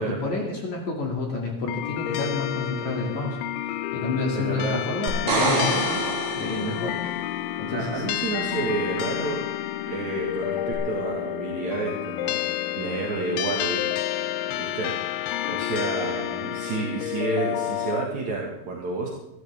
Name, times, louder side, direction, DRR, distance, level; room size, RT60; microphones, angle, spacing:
voice 1, 0.0-5.9 6.3-7.0 7.6-8.0, left 3 dB, 45° left, -1 dB, 3.3 m, -29 dB
sound 1, 1.7-18.1, left 12 dB, 80° left, 2.7 m, -30 dB
voice 2, 4.4-4.8 7.7-9.5 9.9-13.8 14.6-15.0 15.5-19.1, right 3 dB, 50° right, -2 dB, 2.2 m, -30 dB
sound 2, 5.1-7.0 10.7-10.8, right 4 dB, 80° right, 6.9 m, -26 dB
25.5 x 13.5 x 3.6 m, 0.88 s
omnidirectional pair, 5.8 m